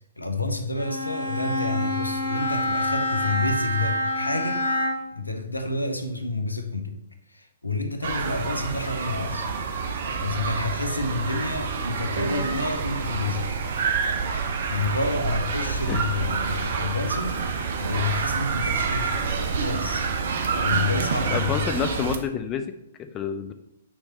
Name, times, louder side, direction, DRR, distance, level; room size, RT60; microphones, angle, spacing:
voice 1, 0.2-4.7 5.1-7.0 7.3-9.5 10.2-13.5 14.7-17.3 17.8-19.2 19.6-20.1 20.6-21.7, left 3 dB, 85° left, 0.7 m, -29 dB
Bowed string instrument, 0.8-5.2, left 1 dB, 80° right, 1.2 m, -27 dB
sound 1, 8.0-22.2, right 5 dB, 50° right, 0.7 m, -27 dB
voice 2, 21.3-22.7 23.0-23.5, left 7 dB, 25° left, 0.4 m, -28 dB
6.1 x 3.3 x 5.1 m
figure-of-eight pair, 115°, 0 cm